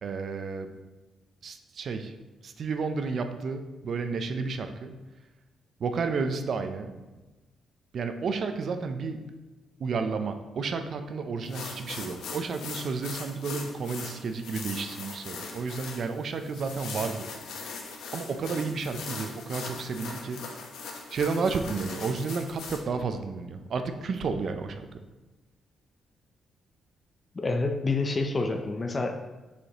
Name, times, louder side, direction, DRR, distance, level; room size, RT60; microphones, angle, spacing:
voice 1, 0.0-0.7 1.4-2.1 2.4-4.9 5.8-6.9 7.9-9.2 9.8-17.3 17.6-17.8 18.1-20.4 21.1-24.9, right 4 dB, 55° right, 7 dB, 0.5 m, -31 dB
sound 1, 11.4-22.8, left 4 dB, 85° left, 1.0 m, -40 dB
voice 2, 27.3-29.1, left 3 dB, 30° left, 5 dB, 0.5 m, -28 dB
6.7 x 4.9 x 2.9 m, 1.2 s
cardioid pair, 100°, 0 cm